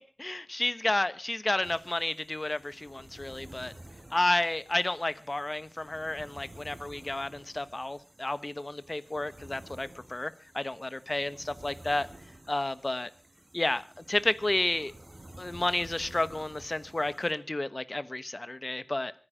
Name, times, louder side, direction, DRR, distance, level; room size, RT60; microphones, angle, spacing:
voice 1, 0.2-3.7 4.1-12.1 12.5-13.1 13.5-14.9 15.4-19.1, left 2 dB, 45° left, 14 dB, 1.2 m, -31 dB
sound 1, 1.6-17.3, right 1 dB, 40° right, 4.6 m, -52 dB
25.0 x 9.8 x 5.0 m, 0.35 s
wide cardioid pair, 40°, 0 cm